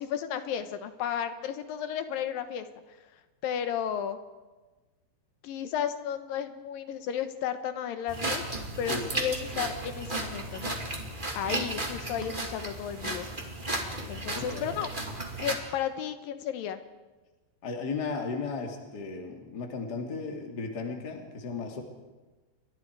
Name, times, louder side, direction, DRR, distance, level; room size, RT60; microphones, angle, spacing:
voice 1, 0.0-2.7 3.4-4.2 5.4-8.4 8.8-10.8 11.4-13.3 14.1-14.9 15.4-16.8, left 9 dB, 70° left, 9 dB, 2.3 m, -33 dB
sound 1, 8.1-15.5, right 2 dB, 25° right, 1.0 m, -34 dB
voice 2, 14.3-14.7 17.6-21.8, left 4 dB, 30° left, 2 dB, 2.4 m, -35 dB
29.5 x 23.5 x 4.8 m, 1.2 s
omnidirectional pair, 5.2 m